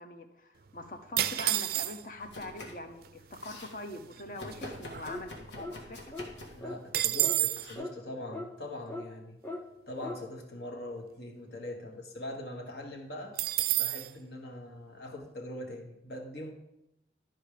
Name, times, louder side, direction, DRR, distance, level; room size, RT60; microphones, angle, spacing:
voice 1, 0.0-6.2, left 2 dB, 45° left, 7 dB, 0.8 m, -43 dB
sound 1, 1.2-2.3 3.1-3.2 3.3-3.7 4.1-5.6 5.9-6.0 6.3-7.7 13.4-14.1, right 15 dB, 55° right, 0.4 m, -30 dB
Domestic sounds home sounds, 2.2-2.9 3.2-3.7 4.4-6.7 7.6-7.8, left 1 dB, 85° left, 1.7 m, -46 dB
sound 2, 5.1-5.3 5.6-5.8 6.1-6.3 6.6-6.8 7.2-7.4 7.8-7.9 8.3-8.5 8.9-9.0 9.4-9.6 10.0-10.2, left 1 dB, 10° left, 0.8 m, -39 dB
voice 2, 6.5-9.4 9.9-13.4 13.7-16.5, left 1 dB, 65° left, 1 dB, 1.5 m, -42 dB
12.0 x 4.5 x 5.0 m, 0.87 s
head